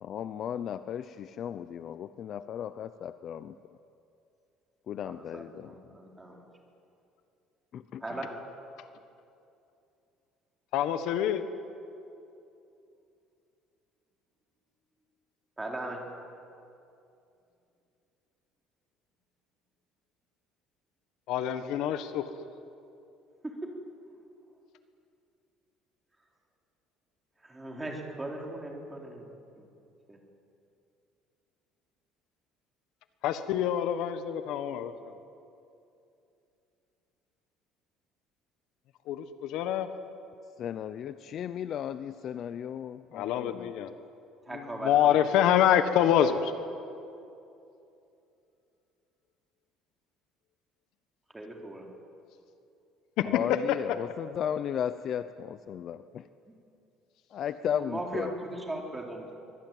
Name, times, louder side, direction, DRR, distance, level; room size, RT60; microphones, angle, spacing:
voice 1, 0.0-3.8 4.9-5.7 7.7-8.2 40.6-43.7 53.2-56.3 57.3-58.3, left 9 dB, 40° left, 13 dB, 0.6 m, -35 dB
voice 2, 5.3-6.4 8.0-8.4 15.6-16.1 23.4-23.7 27.4-29.3 29.6-29.7 30.1-30.2 44.5-45.4 51.3-51.9 57.7-59.3, right 1 dB, 10° right, 0 dB, 3.7 m, -38 dB
voice 3, 10.7-11.4 21.3-22.3 33.2-34.9 39.1-39.9 43.1-43.9 44.5-46.5 53.2-53.3, left 10 dB, 65° left, 10 dB, 1.4 m, -26 dB
24.0 x 21.0 x 9.3 m, 2.7 s
cardioid pair, 155°, 0 cm